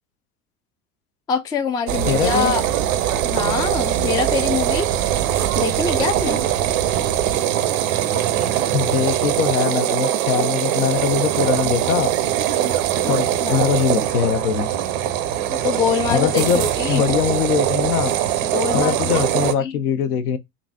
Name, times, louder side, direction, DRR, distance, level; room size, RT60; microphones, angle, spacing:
voice 1, 1.3-2.6 3.2-4.9 5.6-6.4 13.0-13.1 13.4-13.7 15.5-17.0 18.4-19.8, left 6 dB, 10° left, 0.3 m, -24 dB
sound 1, 1.9-19.5, right 11 dB, 60° right, 0.6 m, -21 dB
voice 2, 2.1-2.5 8.7-12.1 13.1-14.7 16.1-18.2 18.7-20.4, left 8 dB, 65° left, 0.7 m, -22 dB
3.9 x 2.6 x 2.2 m
figure-of-eight pair, 75°, 48 cm